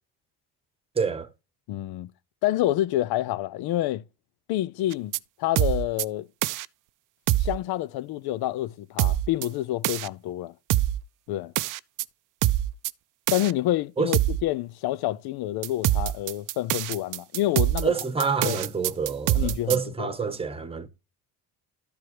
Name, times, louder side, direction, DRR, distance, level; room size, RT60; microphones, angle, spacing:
voice 1, 0.9-1.3 14.0-14.1 17.8-20.9, right 5 dB, 15° right, 1.1 m, -27 dB
voice 2, 1.7-2.1 2.4-4.0 4.5-5.1 5.4-6.3 7.4-10.5 11.3-11.5 13.3-17.9 18.4-18.6 19.3-20.1, left 14 dB, 65° left, 0.6 m, -28 dB
sound 1, 4.9-5.2 5.6-6.0 6.4-6.6 7.3-7.6 9.0-9.5 9.8-10.1 10.7-11.0 11.6-12.0 12.4-12.9 13.3-13.5 14.1-14.4 15.6-19.8, right 14 dB, 55° right, 0.5 m, -24 dB
13.0 x 4.7 x 3.1 m
cardioid pair, 120°, 40 cm